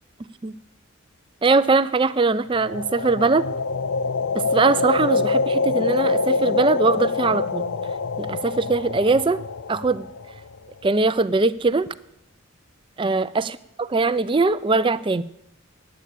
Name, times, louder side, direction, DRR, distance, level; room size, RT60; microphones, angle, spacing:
voice 1, 1.4-3.5 4.3-7.6 8.2-9.4 9.7-10.1 10.8-11.9 13.0-15.2, right 3 dB, 25° right, 16 dB, 0.4 m, -21 dB
sound 1, 2.6-10.6, left 4 dB, 80° left, 0.6 m, -25 dB
10.0 x 8.7 x 8.2 m, 0.76 s
head